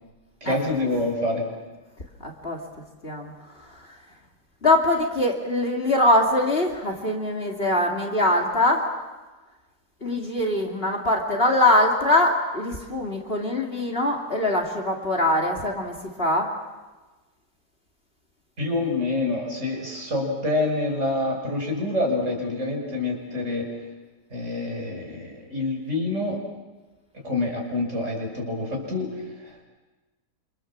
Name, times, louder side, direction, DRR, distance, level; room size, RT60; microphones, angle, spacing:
voice 1, 0.4-1.5 18.6-23.7 24.3-26.4 27.2-29.1 29.4-29.7, left 2 dB, 45° right, 0 dB, 6.5 m, -27 dB
voice 2, 2.2-2.6 3.0-4.0 4.6-8.9 10.0-16.5, left 1 dB, 35° left, 0 dB, 3.0 m, -23 dB
28.0 x 27.0 x 7.5 m, 1.2 s
omnidirectional pair, 1.7 m